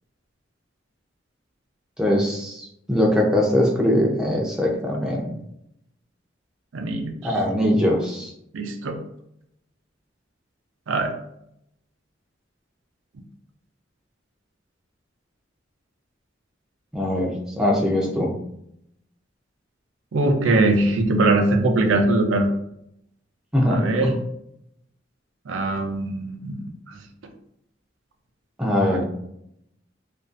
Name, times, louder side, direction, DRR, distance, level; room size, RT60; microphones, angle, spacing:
voice 1, 2.0-5.3 7.2-8.3 16.9-18.3 23.5-24.1 28.6-29.0, left 1 dB, 5° right, -2 dB, 0.4 m, -21 dB
voice 2, 6.7-7.1 8.5-9.0 10.9-11.1 20.1-22.5 23.7-24.1 25.5-26.6 28.9-29.0, right 2 dB, 80° right, 5 dB, 0.4 m, -21 dB
2.5 x 2.3 x 2.4 m, 0.76 s
head